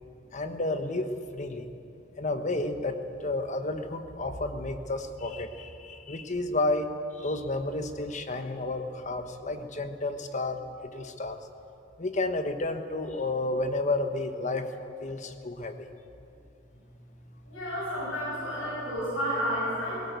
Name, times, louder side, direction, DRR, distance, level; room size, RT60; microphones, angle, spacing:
voice 1, 0.3-1.7 2.2-11.4 12.0-14.7 15.0-15.9, left 2 dB, 40° left, 8 dB, 1.2 m, -31 dB
voice 2, 17.5-20.1, equal, 85° left, -7 dB, 7.0 m, -31 dB
18.5 x 17.5 x 8.2 m, 2.8 s
head